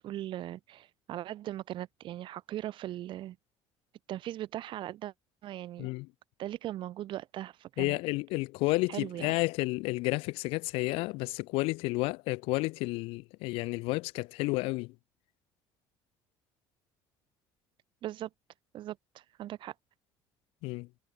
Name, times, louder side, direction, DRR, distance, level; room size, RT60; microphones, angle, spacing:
voice 1, 0.0-3.4 4.1-5.1 5.4-5.9 6.4-8.0 8.9-9.3 18.0-18.3 18.7-19.7, right 13 dB, 60° right, 4.7 m, -39 dB
voice 2, 7.8-14.9 20.6-20.9, left 23 dB, 85° left, 3.1 m, -31 dB
cardioid pair, 110°, 9 cm